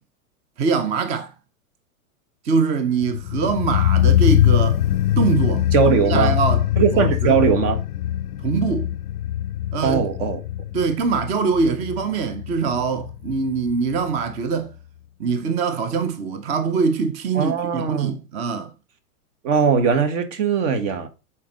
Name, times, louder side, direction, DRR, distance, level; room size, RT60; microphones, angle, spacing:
voice 1, 0.6-1.3 2.4-4.8 5.2-5.7 6.1-6.6 6.9-7.4 8.4-8.9 9.7-10.0 10.7-14.7 15.2-18.7, right 5 dB, 15° right, 0.4 m, -23 dB
sound 1, 3.0-14.0 14.3-14.4, left 12 dB, 85° left, 0.5 m, -22 dB
voice 2, 5.7-6.4 6.8-7.8 9.8-10.4 17.3-18.2 19.4-21.1, right 6 dB, 55° right, 1.5 m, -20 dB
7.4 x 4.3 x 3.9 m
hypercardioid pair, 115°, 45 cm